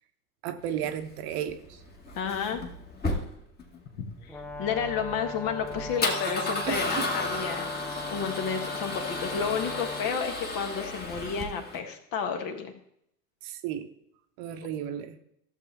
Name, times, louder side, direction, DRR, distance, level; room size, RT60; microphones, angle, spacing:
voice 1, 0.4-1.8 6.7-7.1 13.4-13.9 14.4-15.2, right 10 dB, 50° right, 8 dB, 1.1 m, -33 dB
Male speech man speaking / Car / Engine starting, 0.7-11.8, left 2 dB, 20° left, 1.8 m, -34 dB
voice 2, 2.1-2.6 4.2-12.7, left 6 dB, 45° left, 5 dB, 1.6 m, -31 dB
Brass instrument, 4.3-10.1, left 3 dB, 5° left, 0.5 m, -39 dB
14.5 x 7.0 x 3.5 m, 0.75 s
hypercardioid pair, 95°, 46 cm